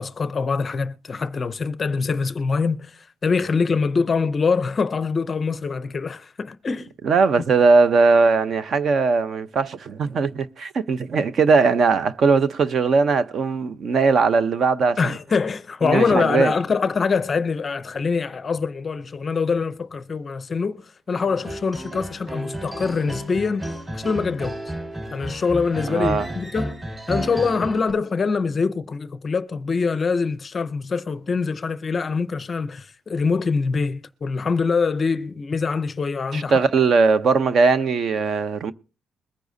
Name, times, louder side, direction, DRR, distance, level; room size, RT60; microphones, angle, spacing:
voice 1, 0.0-6.9 15.0-24.6 25.1-26.8 27.1-36.5, left 4 dB, 25° left, 0.5 m, -24 dB
voice 2, 7.0-15.1 15.8-16.5 25.9-26.3 36.3-38.7, right 4 dB, 45° right, 0.6 m, -19 dB
sound 1, 21.3-27.9, right 1 dB, 20° right, 4.9 m, -32 dB
21.5 x 10.0 x 2.7 m
cardioid pair, 165°, 0 cm